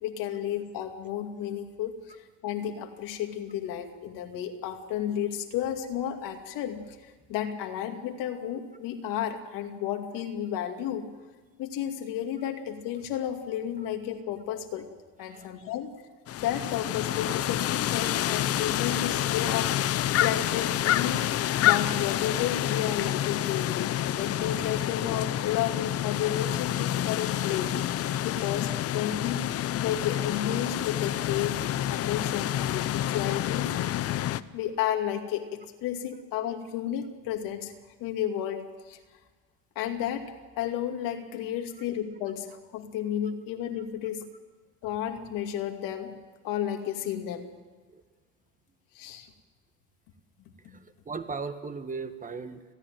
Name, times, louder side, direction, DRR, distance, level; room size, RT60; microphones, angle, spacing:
voice 1, 0.0-2.0 2.4-6.8 7.3-11.1 11.6-14.9 15.2-15.9 16.4-19.7 20.2-21.3 21.6-27.8 28.2-29.5 29.8-31.6 31.9-34.1 34.5-37.7 38.0-39.0 39.8-44.2 44.8-46.2 46.4-47.5 48.9-49.3 50.6-50.8, left 10 dB, 65° left, 4 dB, 2.5 m, -32 dB
sound 1, 16.3-34.4, left 12 dB, 40° left, 0.7 m, -28 dB
voice 2, 50.6-52.6, right 4 dB, 20° right, 8 dB, 1.5 m, -38 dB
30.0 x 10.0 x 9.1 m, 1.4 s
supercardioid pair, 105°, 35 cm